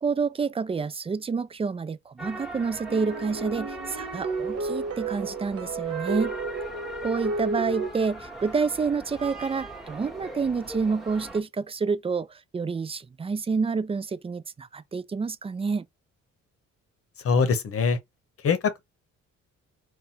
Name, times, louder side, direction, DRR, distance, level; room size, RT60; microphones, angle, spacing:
voice 1, 0.0-6.3 7.0-15.8, right 5 dB, 20° right, 0.4 m, -28 dB
sound 1, 2.2-11.4, right 1 dB, ahead, 1.3 m, -40 dB
sound 2, 2.9-7.9, right 4 dB, 50° right, 1.1 m, -32 dB
voice 2, 17.2-18.0 18.4-18.8, left 5 dB, 50° left, 0.9 m, -23 dB
4.1 x 2.2 x 4.2 m
cardioid pair, 90°, 30 cm